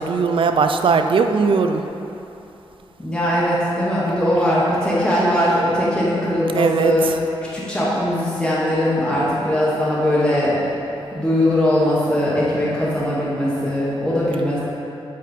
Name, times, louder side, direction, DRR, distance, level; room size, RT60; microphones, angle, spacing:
voice 1, 0.0-1.8 6.5-6.9, right 5 dB, 60° right, 6 dB, 0.4 m, -18 dB
voice 2, 3.0-7.1 7.5-10.6 11.1-14.6, left 1 dB, 10° left, -9 dB, 1.3 m, -20 dB
8.4 x 4.3 x 4.1 m, 3.0 s
wide cardioid pair, 145°, 10 cm